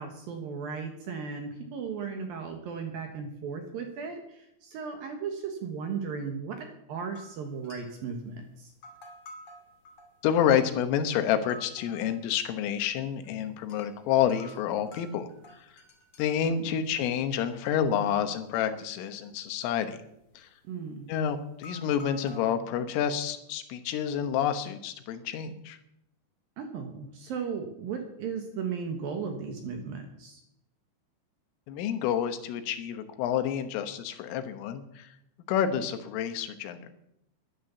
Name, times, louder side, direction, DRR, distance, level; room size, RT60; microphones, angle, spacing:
voice 1, 0.0-8.7 16.5-16.7 20.7-21.1 26.6-30.4, right 6 dB, 65° right, 4 dB, 2.5 m, -36 dB
sound 1, 7.2-8.2 8.7-10.8 11.3-12.4 12.7-13.3 13.6-13.9 14.3-17.6 17.9-18.6 19.0-19.8 20.1-20.4 21.0-21.1 21.5-22.5, equal, 40° left, 2.3 m, -50 dB
voice 2, 10.2-15.3 15.6-15.7 16.2-20.0 20.4-20.5 21.1-25.8 31.7-35.1 35.5-36.8, left 9 dB, 90° left, 9 dB, 3.8 m, -29 dB
12.0 x 11.5 x 7.0 m, 0.81 s
omnidirectional pair, 5.6 m